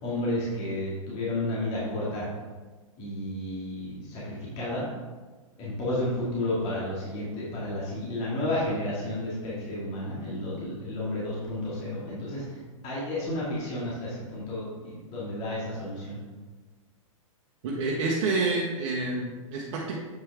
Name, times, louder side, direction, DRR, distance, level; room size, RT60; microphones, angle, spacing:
voice 1, 0.0-2.3 3.0-4.9 5.6-16.2, left 1 dB, 35° left, -7 dB, 2.3 m, -32 dB
voice 2, 17.6-20.0, right 3 dB, 55° right, -3 dB, 1.2 m, -28 dB
7.9 x 5.5 x 3.6 m, 1.3 s
hypercardioid pair, 120°, 18 cm